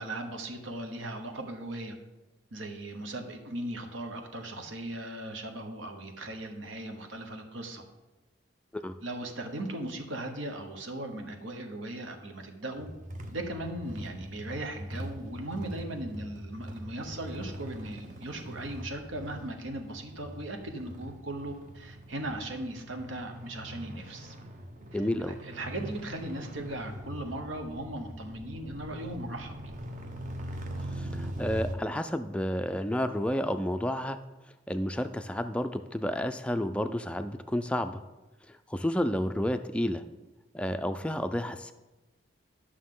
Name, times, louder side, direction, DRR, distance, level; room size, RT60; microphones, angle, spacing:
voice 1, 0.0-1.9 2.5-7.8 9.0-12.9 13.3-24.4 24.9-29.6, right 1 dB, 80° right, 5 dB, 1.2 m, -38 dB
sound 1, 12.7-31.8, equal, 40° right, 0.7 m, -42 dB
voice 2, 24.9-25.4 30.9-34.2 34.7-38.0 38.7-40.0 40.5-41.7, left 1 dB, 5° left, 8 dB, 0.3 m, -30 dB
11.5 x 6.3 x 3.8 m, 1.1 s
head